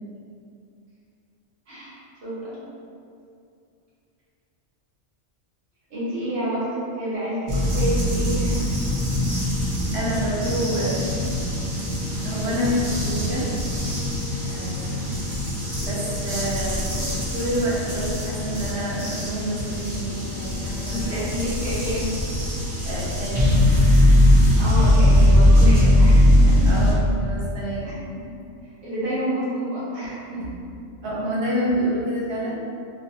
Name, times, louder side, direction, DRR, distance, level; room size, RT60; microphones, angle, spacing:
voice 1, 1.7-2.6 5.9-8.6 20.9-22.1 24.5-26.6 27.8-27.9 28.6-30.4, right 1 dB, 50° right, -11 dB, 1.3 m, -29 dB
sound 1, 7.5-26.9, left 1 dB, 30° right, 0.8 m, -20 dB
voice 2, 9.9-11.3 12.2-13.4 14.4-15.2 15.8-21.3 22.8-23.5 26.6-27.9 30.3-30.5 31.0-32.6, equal, 65° right, -5 dB, 0.9 m, -28 dB
2.9 x 2.2 x 2.7 m, 2.5 s
omnidirectional pair, 1.2 m